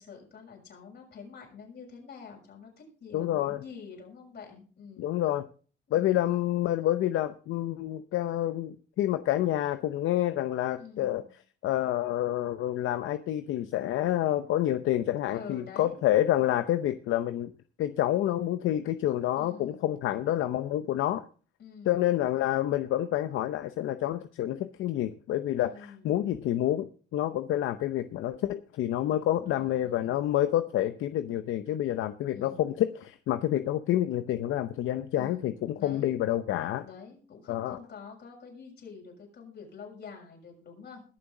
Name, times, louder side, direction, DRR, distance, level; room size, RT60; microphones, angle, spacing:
voice 1, 0.0-5.2 5.9-6.3 10.8-11.3 15.3-15.9 19.4-19.8 21.6-22.2 25.7-26.1 29.1-30.1 32.3-32.7 35.2-36.1 36.8-41.0, left 6 dB, 60° left, 0 dB, 6.6 m, -47 dB
voice 2, 3.1-3.6 5.0-5.4 5.9-11.2 11.6-17.5 17.8-21.2 21.9-36.8 37.5-37.8, left 13 dB, 80° left, 11 dB, 0.7 m, -28 dB
21.5 x 7.2 x 3.8 m, 0.39 s
cardioid pair, 90°, 20 cm